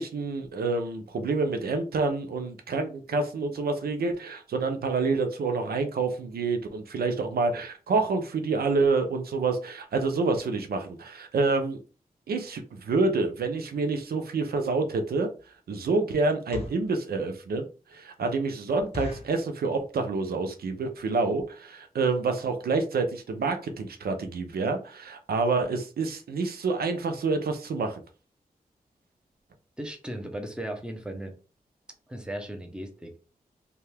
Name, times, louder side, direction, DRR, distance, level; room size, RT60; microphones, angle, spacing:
voice 1, 0.0-11.8 12.3-15.3 15.7-17.7 17.9-28.0, right 3 dB, 85° right, 0.5 m, -28 dB
sound 1, 15.4-15.6 16.3-16.9 17.5-17.6 17.9-18.0 18.3-18.4 18.9-19.4 20.0-20.3 20.6-20.7 20.9-21.2 21.7-21.8 22.0-22.2 22.6-22.7 22.9-23.0, left 4 dB, 40° left, 0.7 m, -39 dB
voice 2, 29.8-31.3 32.1-33.2, right 1 dB, 5° right, 0.8 m, -36 dB
2.7 x 2.3 x 3.3 m
cardioid pair, 55°, 16 cm